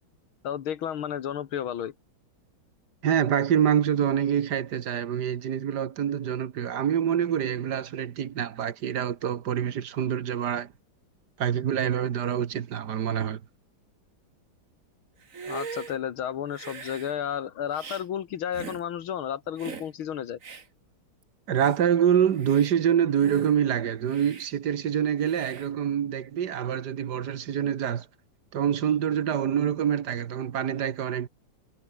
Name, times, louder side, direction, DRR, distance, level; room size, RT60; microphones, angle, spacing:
voice 1, 0.4-1.9 15.5-20.4, left 9 dB, 80° left, 2.2 m, -32 dB
voice 2, 3.0-10.7 11.4-13.4 21.5-28.1 28.5-31.3, right 9 dB, 55° right, 1.7 m, -26 dB
Hiss, 15.2-16.0 16.5-17.1 17.7-18.0 18.5-18.8 19.6-19.9 20.4-20.7 21.2-21.3 21.6-21.8 22.3-22.7 23.2-23.6 24.1-24.5 25.3-25.7, right 5 dB, 40° right, 2.2 m, -41 dB
omnidirectional pair, 2.3 m